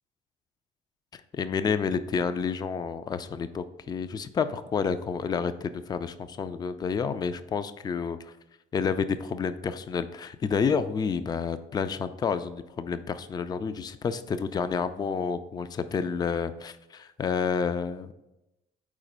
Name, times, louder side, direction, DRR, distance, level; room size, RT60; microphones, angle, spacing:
voice 1, 1.1-8.3 8.7-18.1, left 6 dB, 25° left, 12 dB, 0.4 m, -29 dB
4.9 x 4.2 x 5.4 m, 0.94 s
cardioid pair, 110°, 17 cm